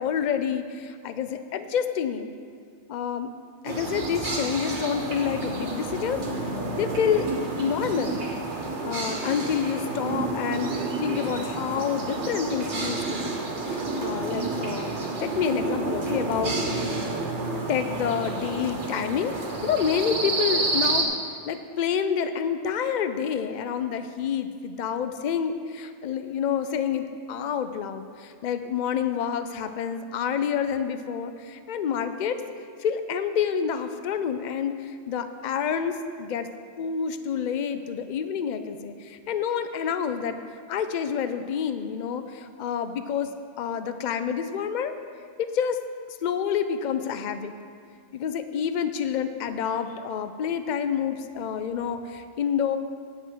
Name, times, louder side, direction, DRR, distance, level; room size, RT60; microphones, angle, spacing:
voice 1, 0.0-2.3 2.9-3.3 3.6-6.2 6.8-7.3 7.6-8.2 8.8-13.4 13.6-16.9 17.7-19.3 19.6-21.1 21.5-32.4 32.8-36.5 36.8-40.4 40.7-43.3 43.6-44.9 45.4-45.8 46.1-47.5 48.1-52.8, left 7 dB, 60° left, 10 dB, 0.5 m, -28 dB
sound 1, 3.6-21.0, right 3 dB, 60° right, 1.4 m, -30 dB
9.6 x 5.7 x 7.2 m, 2.1 s
omnidirectional pair, 1.3 m